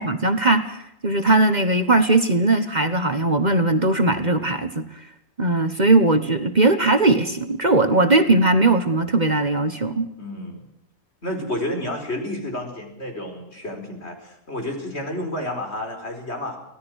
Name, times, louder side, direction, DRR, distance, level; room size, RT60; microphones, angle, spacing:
voice 1, 0.0-5.0 5.4-10.1, right 2 dB, 35° right, 9 dB, 1.4 m, -19 dB
voice 2, 10.2-10.6 11.2-16.6, left 1 dB, 55° left, 4 dB, 4.9 m, -30 dB
24.0 x 17.0 x 6.4 m, 0.82 s
omnidirectional pair, 1.3 m